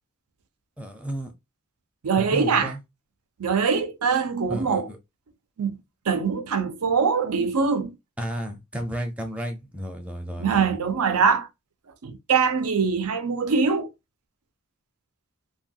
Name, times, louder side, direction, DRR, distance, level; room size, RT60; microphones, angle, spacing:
voice 1, 0.8-1.3 2.2-2.8 4.5-5.0 8.2-10.8, right 1 dB, 5° right, 0.5 m, -33 dB
voice 2, 2.0-2.7 3.4-4.9 5.6-5.8 6.1-7.9 10.4-11.5 12.0-13.9, right 5 dB, 90° right, 0.6 m, -23 dB
3.0 x 2.3 x 2.7 m
head